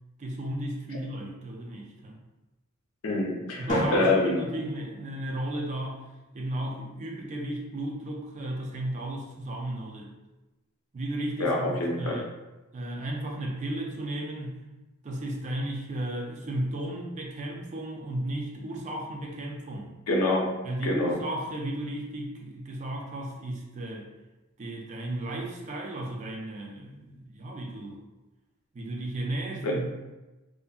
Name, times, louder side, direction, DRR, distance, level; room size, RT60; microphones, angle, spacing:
voice 1, 0.2-2.2 3.6-6.0 6.3-10.1 10.9-12.3 12.7-14.6 15.0-19.9 20.6-24.1 24.6-28.0 28.7-29.9, right 1 dB, 35° right, 0 dB, 0.4 m, -34 dB
voice 2, 3.0-4.4 11.4-12.2 20.1-20.5 20.8-21.2 29.6-29.7, left 2 dB, 85° left, -1 dB, 0.6 m, -26 dB
Drum, 3.7-5.7, equal, 35° left, 0.6 m, -32 dB
2.6 x 2.5 x 2.3 m, 1.1 s
head